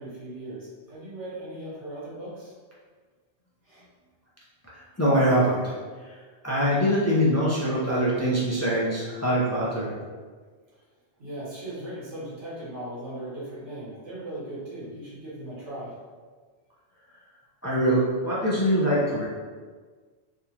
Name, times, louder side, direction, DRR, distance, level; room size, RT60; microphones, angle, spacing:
voice 1, 0.0-2.5 3.6-3.8 11.2-15.9, right 1 dB, 80° right, -8 dB, 1.5 m, -38 dB
voice 2, 5.0-5.7 6.0-6.1 6.4-9.9 17.6-19.2, equal, 25° left, -7 dB, 0.4 m, -23 dB
3.6 x 2.4 x 2.8 m, 1.5 s
omnidirectional pair, 1.2 m